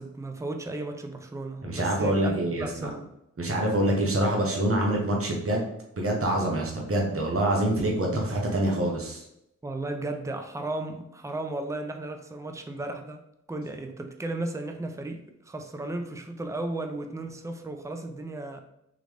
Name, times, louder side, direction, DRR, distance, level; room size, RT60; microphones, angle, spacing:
voice 1, 0.0-3.1 9.6-13.2 13.5-18.6, right 2 dB, 10° right, 5 dB, 0.5 m, -35 dB
voice 2, 1.6-2.9 3.4-5.6 6.0-9.2, right 1 dB, 45° right, -1 dB, 1.1 m, -26 dB
3.9 x 3.1 x 3.3 m, 0.80 s
cardioid pair, 45°, 31 cm